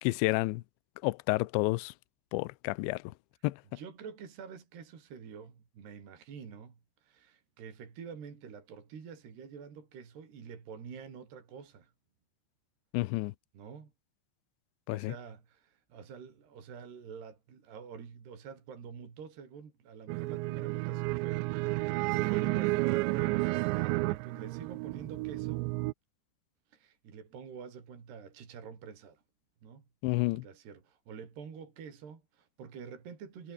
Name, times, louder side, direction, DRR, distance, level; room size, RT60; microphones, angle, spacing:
voice 1, 0.0-0.6 1.0-1.9 2.3-3.0 3.4-3.6 12.9-13.3 14.9-15.1 30.0-30.4, left 21 dB, 80° left, 2.9 m, -30 dB
voice 2, 3.7-11.9 13.5-13.9 14.9-25.7 26.7-29.2 29.6-29.8 30.3-33.5, right 6 dB, 60° right, 6.4 m, -47 dB
sound 1, 20.1-25.9, right 24 dB, 85° right, 2.6 m, -31 dB
omnidirectional pair, 5.5 m